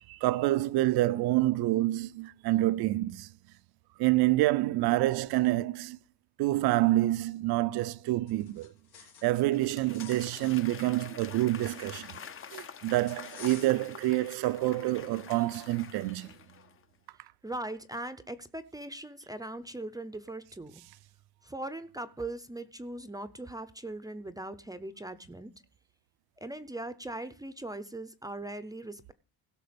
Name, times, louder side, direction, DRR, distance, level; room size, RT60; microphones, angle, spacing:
voice 1, 0.1-3.3 4.0-6.0 6.4-8.7 9.2-12.2 12.5-16.3, right 17 dB, 80° right, 0.6 m, -27 dB
sound 1, 8.3-9.4 9.7-12.5 13.1-14.0, left 7 dB, 85° left, 2.3 m, -52 dB
Applause / Crowd, 9.0-16.8, left 7 dB, 35° left, 0.7 m, -47 dB
voice 2, 17.4-20.8 21.4-25.5 26.4-29.1, right 2 dB, 10° right, 0.6 m, -40 dB
16.5 x 6.1 x 5.1 m
cardioid pair, 130°, 37 cm